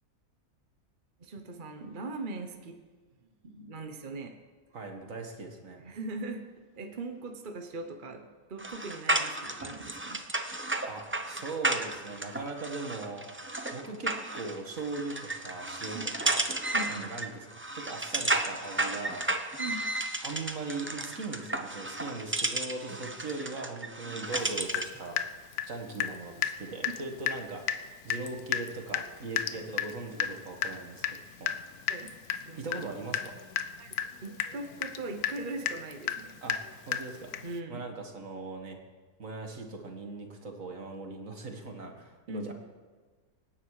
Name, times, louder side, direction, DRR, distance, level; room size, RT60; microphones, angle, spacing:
voice 1, 1.2-2.8 3.4-4.4 5.8-10.2 15.9-16.1 16.7-17.1 19.6-19.9 29.5-29.6 31.9-32.1 32.5-32.9 33.8-33.9 34.2-36.4 37.4-37.8 42.3-42.5, right 2 dB, 35° right, 5 dB, 1.1 m, -40 dB
voice 2, 4.7-5.8 10.9-13.3 13.7-16.5 16.9-17.3 17.7-19.2 20.2-25.2 25.7-27.6 28.0-31.1 31.4-31.5 32.6-33.4 36.4-36.6 36.9-37.3 37.7-38.8 39.2-42.5, right 3 dB, 60° right, 3 dB, 2.2 m, -39 dB
sound 1, 8.6-25.0, right 2 dB, 15° right, 0.4 m, -33 dB
Water tap faucet / Drip, 24.3-24.5 24.7-26.2 26.4-26.6 26.8-27.0 27.3-27.4 27.7-27.8 28.1-37.6, left 9 dB, 80° left, 1.2 m, -33 dB
25.0 x 9.9 x 4.9 m, 1.4 s
omnidirectional pair, 1.6 m